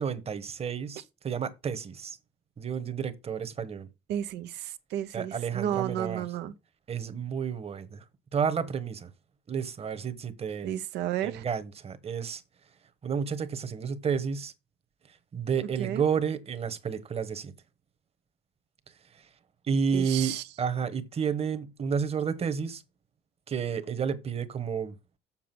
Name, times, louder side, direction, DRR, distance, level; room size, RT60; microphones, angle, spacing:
voice 1, 0.0-2.2 2.6-3.9 5.1-6.2 6.9-8.0 8.3-9.1 9.5-10.7 11.2-12.4 13.0-14.5 15.3-17.5 19.7-22.8 23.5-24.9, right 6 dB, 35° right, 1.3 m, -31 dB
voice 2, 4.1-6.5 10.6-11.4 15.8-16.0 19.9-20.4, right 11 dB, 85° right, 1.0 m, -32 dB
7.4 x 6.7 x 6.1 m
cardioid pair, 110°, 17 cm